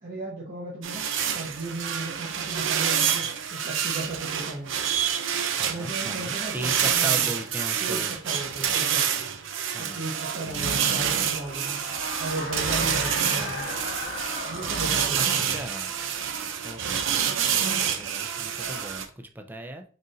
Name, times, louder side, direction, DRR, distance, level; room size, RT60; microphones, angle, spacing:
voice 1, 0.0-4.7 5.7-7.3 7.8-9.2 9.8-11.8 12.2-13.7 14.4-15.6, right 2 dB, 45° right, -5 dB, 0.9 m, -36 dB
sound 1, 0.8-19.0, right 8 dB, 65° right, 0.5 m, -27 dB
voice 2, 5.5-8.1 9.7-10.0 10.5-10.7 13.1-13.6 15.1-15.9 16.6-19.8, right 1 dB, 10° right, 4 dB, 0.4 m, -38 dB
sound 2, 8.6-17.4, left 2 dB, 50° left, 1.0 m, -39 dB
4.0 x 2.5 x 3.8 m, 0.43 s
head